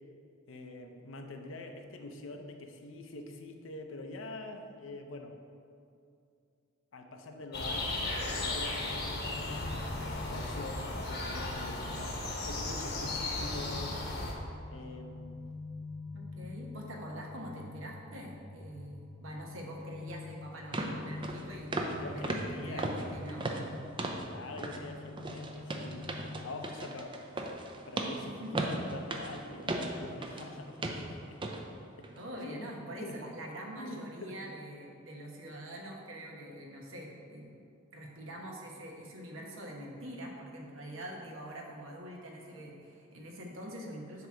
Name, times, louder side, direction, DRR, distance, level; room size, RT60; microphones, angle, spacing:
voice 1, 0.5-5.4 6.9-14.0 14.7-15.4 21.9-22.9 24.3-26.2 26.4-27.2 27.9-31.4 32.0-32.7 33.0-33.2 33.8-34.4, left 2 dB, 75° left, 5 dB, 0.6 m, -45 dB
sound 1, 7.5-14.3, left 2 dB, 55° left, 1.0 m, -36 dB
sound 2, 8.9-26.4, left 3 dB, 15° left, 0.8 m, -47 dB
voice 2, 16.1-23.5 28.2-28.6 32.1-37.6 37.9-44.3, equal, 80° right, 0 dB, 1.1 m, -44 dB
sound 3, 20.1-20.2 20.7-21.0 21.2-21.4 21.7-22.0 22.2-24.3 24.6-24.8 25.2-30.5 30.8-31.0 31.4-31.6 32.0-32.2, right 2 dB, 25° right, 0.5 m, -36 dB
7.9 x 2.9 x 6.2 m, 2.5 s
head